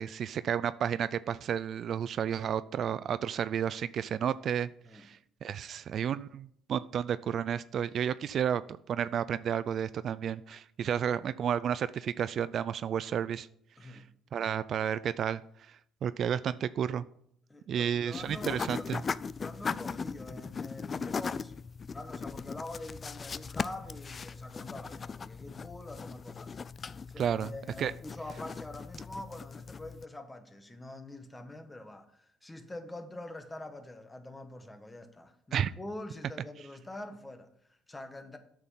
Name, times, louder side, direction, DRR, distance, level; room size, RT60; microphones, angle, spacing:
voice 1, 0.0-8.6 8.9-13.5 13.8-13.9 14.3-15.4 16.0-17.0 17.7-19.0 27.2-27.5 27.8-27.9 35.5-35.7, right 8 dB, 50° right, 0.3 m, -32 dB
voice 2, 13.8-14.1 17.5-18.9 19.3-21.5 21.9-26.6 27.1-38.4, left 2 dB, 15° left, 1.2 m, -45 dB
sound 1, 18.1-30.0, left 5 dB, 30° left, 0.3 m, -39 dB
8.8 x 6.4 x 5.6 m
cardioid pair, 105°, 0 cm